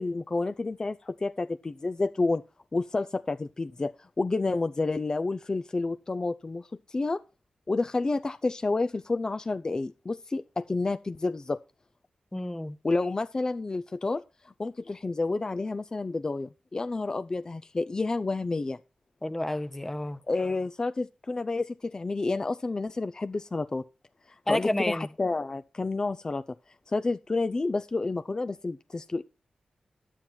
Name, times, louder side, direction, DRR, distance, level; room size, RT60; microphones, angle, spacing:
voice 1, 0.0-2.4 2.7-7.2 7.7-11.6 12.8-18.8 20.3-23.8 24.3-26.4 26.9-29.2, left 3 dB, 35° left, 0.5 m, -30 dB
voice 2, 12.3-12.8 19.2-20.2 24.5-25.1, left 1 dB, 15° left, 0.8 m, -30 dB
11.5 x 9.1 x 4.4 m
cardioid pair, 75°, 2 cm